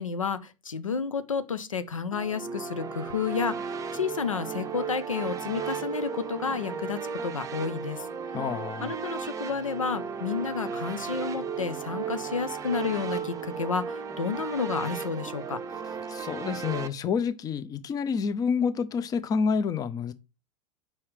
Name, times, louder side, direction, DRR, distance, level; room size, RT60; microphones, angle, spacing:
voice 1, 0.0-8.1 8.8-15.6, left 5 dB, 85° left, 0.5 m, -31 dB
sound 1, 2.1-16.9, right 6 dB, 20° right, 0.6 m, -35 dB
voice 2, 8.3-8.9 16.1-20.1, left 6 dB, 20° left, 0.5 m, -28 dB
4.8 x 4.2 x 4.8 m
figure-of-eight pair, 90°, 17 cm